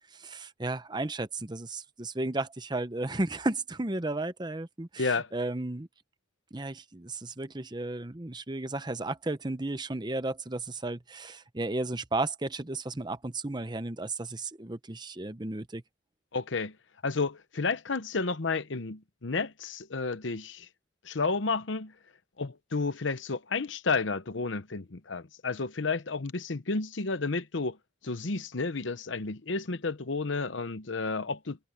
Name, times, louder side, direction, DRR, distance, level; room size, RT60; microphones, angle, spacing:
voice 1, 0.1-5.9 6.5-15.8, right 2 dB, 20° right, 0.8 m, -34 dB
voice 2, 5.0-5.3 16.3-16.7 17.0-20.7 21.0-21.9 22.4-27.8 28.0-31.6, left 4 dB, 75° left, 0.9 m, -31 dB
head